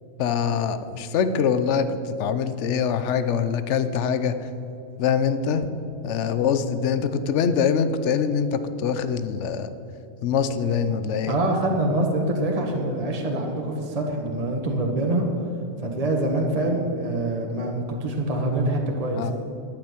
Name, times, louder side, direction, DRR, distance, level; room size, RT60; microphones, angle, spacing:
voice 1, 0.2-4.4 5.0-5.7 6.0-9.7 10.2-11.3 19.2-19.3, left 7 dB, 65° left, 11 dB, 1.0 m, -24 dB
voice 2, 11.3-15.3 15.8-19.3, right 1 dB, 30° right, 1 dB, 1.4 m, -25 dB
11.5 x 6.9 x 9.6 m, 2.7 s
omnidirectional pair, 1.4 m